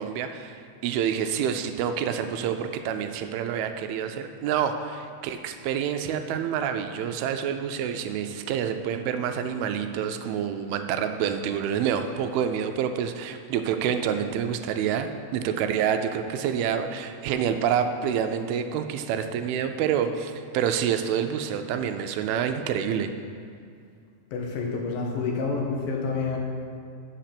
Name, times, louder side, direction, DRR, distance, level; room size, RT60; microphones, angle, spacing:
voice 1, 0.0-23.1, right 8 dB, 85° right, 7 dB, 2.4 m, -27 dB
voice 2, 24.3-26.4, left 4 dB, 75° left, 1 dB, 2.6 m, -28 dB
7.8 x 6.6 x 5.9 m, 2.3 s
omnidirectional pair, 4.4 m